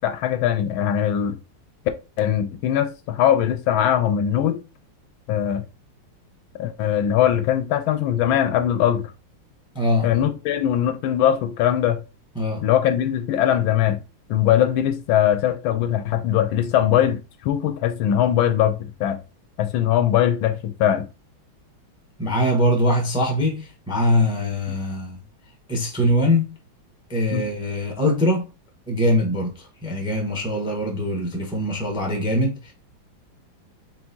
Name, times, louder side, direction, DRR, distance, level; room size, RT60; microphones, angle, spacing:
voice 1, 0.0-1.4 2.2-4.6 5.3-5.6 6.6-9.1 10.0-12.0 12.6-14.0 14.3-19.2 19.6-21.1 24.7-24.8 27.3-27.5, left 10 dB, 80° left, 1.4 m, -21 dB
voice 2, 9.7-10.1 12.3-12.6 22.2-25.2 25.7-26.6 27.1-28.4 28.9-32.7, left 1 dB, 5° right, 0.6 m, -22 dB
4.5 x 3.7 x 2.8 m
omnidirectional pair, 2.3 m